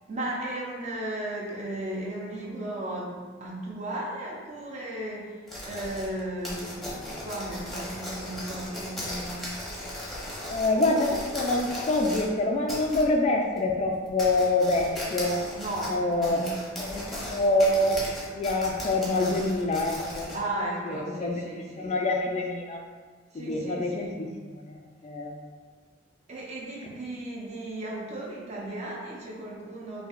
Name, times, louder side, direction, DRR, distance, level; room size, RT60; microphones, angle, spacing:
voice 1, 0.1-9.5 15.5-16.6 20.3-22.0 23.3-24.2 26.3-30.1, right 1 dB, 35° right, -3 dB, 0.8 m, -35 dB
sound 1, 5.5-12.3 12.7-13.1 13.6-13.7 14.1-20.4, left 1 dB, ahead, 0.8 m, -37 dB
voice 2, 10.5-15.5 15.9-16.5 16.8-18.1 18.3-20.3 20.9-22.8 23.3-24.8 25.0-25.4, left 2 dB, 35° left, 1 dB, 0.3 m, -26 dB
5.8 x 2.7 x 2.4 m, 1.5 s
head